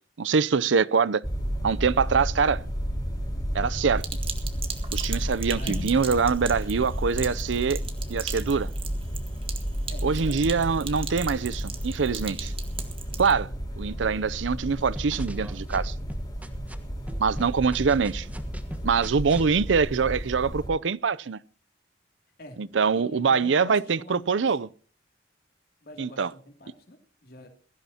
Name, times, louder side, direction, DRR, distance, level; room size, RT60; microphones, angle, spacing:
voice 1, 0.2-1.2 1.6-2.6 3.5-4.0 4.9-7.8 8.1-8.7 10.0-12.5 13.2-13.5 13.8-15.9 17.2-18.3 18.8-21.4 22.6-24.7 26.0-26.3, right 5 dB, 90° right, 0.6 m, -24 dB
sound 1, 1.2-20.7, equal, 25° left, 4.7 m, -32 dB
Sink (filling or washing), 4.0-13.3, right 6 dB, 30° right, 1.8 m, -39 dB
voice 2, 9.9-10.4 22.4-24.6 25.8-27.5, left 1 dB, 55° left, 2.7 m, -45 dB
sound 2, 14.8-16.7 17.1-19.5, right 1 dB, 10° right, 1.3 m, -40 dB
22.0 x 15.0 x 2.9 m
head